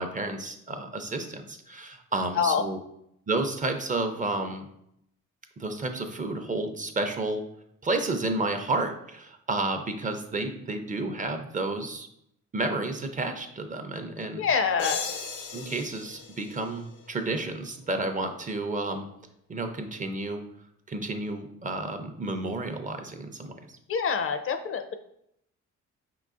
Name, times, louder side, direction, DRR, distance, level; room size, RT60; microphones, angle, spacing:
voice 1, 0.0-2.8 3.3-4.7 5.6-7.4 7.8-12.1 12.5-14.4 15.5-19.1 19.5-20.4 20.9-23.7, right 2 dB, 25° right, 6 dB, 0.5 m, -31 dB
voice 2, 14.4-15.0 23.9-24.9, left 6 dB, 45° left, 8 dB, 0.5 m, -26 dB
sound 1, 14.8-17.5, left 6 dB, 85° left, 0.8 m, -37 dB
5.0 x 3.8 x 2.4 m, 0.74 s
cardioid pair, 90°, 30 cm